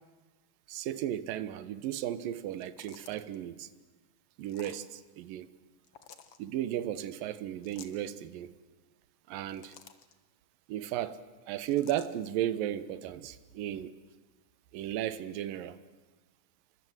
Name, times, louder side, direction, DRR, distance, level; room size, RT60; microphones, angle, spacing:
voice 1, 0.7-3.7 4.4-5.5 6.4-8.6 9.3-9.8 10.7-11.2 11.5-14.0 14.7-15.8, right 11 dB, 70° right, 2.5 m, -35 dB
sound 1, 2.5-3.4 4.5-4.9 5.8-6.4 7.6-8.0 9.3-10.1 11.7-12.1, left 8 dB, 60° left, 1.5 m, -52 dB
28.5 x 25.0 x 8.0 m
omnidirectional pair, 4.7 m